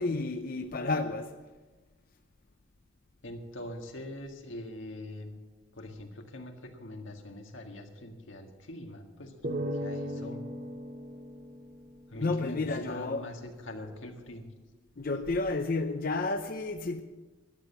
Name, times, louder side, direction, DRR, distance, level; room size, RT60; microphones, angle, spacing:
voice 1, 0.0-1.3 12.1-13.3 15.0-17.0, left 3 dB, 50° left, 0.6 m, -31 dB
voice 2, 3.2-5.3 5.7-10.4 12.1-14.5, left 1 dB, 85° left, 1.9 m, -43 dB
sound 1, 9.4-12.8, equal, 50° right, 1.4 m, -38 dB
13.0 x 10.0 x 7.0 m
head